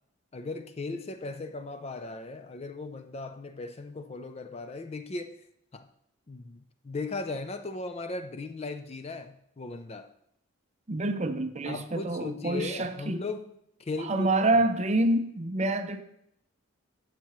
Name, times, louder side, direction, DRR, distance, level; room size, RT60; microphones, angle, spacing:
voice 1, 0.3-5.5 5.7-5.9 6.3-10.1 11.7-13.5 13.8-14.6, left 3 dB, 30° left, 0.4 m, -37 dB
voice 2, 10.9-13.2 14.0-16.0, right 2 dB, 30° right, 0.6 m, -27 dB
12.0 x 7.5 x 3.1 m
head